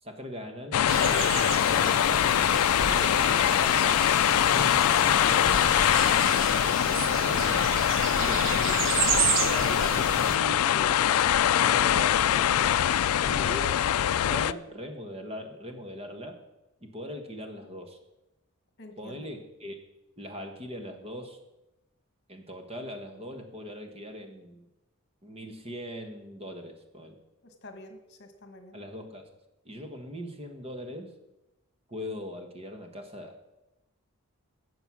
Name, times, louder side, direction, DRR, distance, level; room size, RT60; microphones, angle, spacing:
voice 1, 0.0-2.4 2.8-4.0 4.5-5.6 6.2-8.9 9.4-12.8 13.2-13.8 14.1-16.4 16.8-18.0 19.0-19.8 20.2-21.4 22.3-24.7 25.2-27.2 28.7-29.2 29.6-31.1 31.9-33.4, equal, 30° right, 5 dB, 1.3 m, -40 dB
sound 1, 0.7-14.5, left 10 dB, 85° left, 0.4 m, -23 dB
sound 2, 0.9-10.4, right 6 dB, 60° right, 0.9 m, -32 dB
voice 2, 13.1-13.5 18.8-19.3 27.4-28.8, left 1 dB, 50° left, 7 dB, 1.4 m, -48 dB
13.0 x 7.9 x 6.2 m, 0.96 s
head